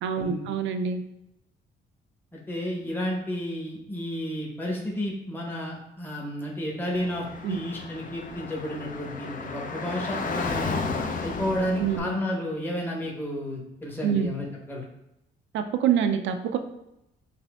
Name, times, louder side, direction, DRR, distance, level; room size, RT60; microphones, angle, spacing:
voice 1, 0.0-1.0 7.4-7.6 11.8-12.1 14.0-14.3 15.5-16.6, right 8 dB, 70° right, 7 dB, 0.4 m, -26 dB
voice 2, 2.3-10.8 11.2-14.8, equal, 10° left, -2 dB, 0.9 m, -32 dB
Car / Traffic noise roadway noise, 6.9-12.0, left 4 dB, 45° left, 0.5 m, -33 dB
5.9 x 2.7 x 2.3 m, 0.85 s
cardioid pair, 90°, 20 cm